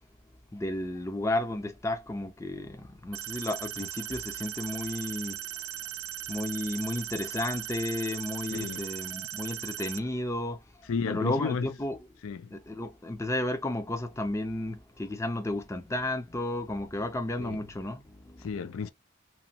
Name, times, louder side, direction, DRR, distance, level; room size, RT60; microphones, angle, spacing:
voice 1, 0.5-5.4 6.3-10.6 11.1-12.0 12.5-18.5, left 1 dB, 15° left, 0.4 m, -33 dB
sound 1, 3.1-10.0, right 12 dB, 80° right, 0.4 m, -38 dB
voice 2, 8.5-8.9 10.9-11.7 12.2-12.5 17.4-17.6 18.4-18.9, left 5 dB, 75° left, 0.4 m, -32 dB
3.0 x 2.3 x 2.7 m
head